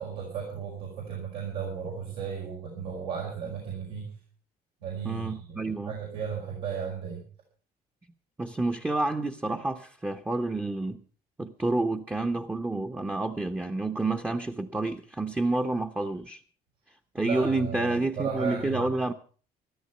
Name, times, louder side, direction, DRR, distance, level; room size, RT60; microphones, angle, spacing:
voice 1, 0.0-4.1 4.8-7.3 17.2-18.9, right 7 dB, 85° right, -3 dB, 5.0 m, -35 dB
voice 2, 5.0-6.0 8.4-11.0 11.4-16.4 17.1-19.1, right 2 dB, 10° right, 7 dB, 0.9 m, -29 dB
14.0 x 13.5 x 5.5 m, 0.41 s
cardioid pair, 110°, 17 cm